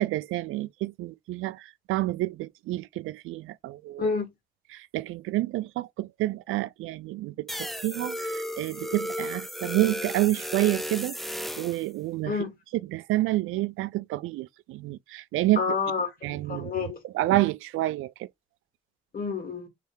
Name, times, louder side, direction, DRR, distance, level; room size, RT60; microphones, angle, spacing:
voice 1, 0.0-4.1 4.7-11.2 11.6-12.4 12.9-15.8 16.2-18.3, right 16 dB, 90° right, 0.4 m, -29 dB
sound 1, 7.5-11.9, equal, ahead, 0.4 m, -34 dB
voice 2, 15.6-17.0 19.1-19.7, left 5 dB, 45° left, 2.1 m, -29 dB
3.3 x 3.2 x 4.6 m
cardioid pair, 75°, 20 cm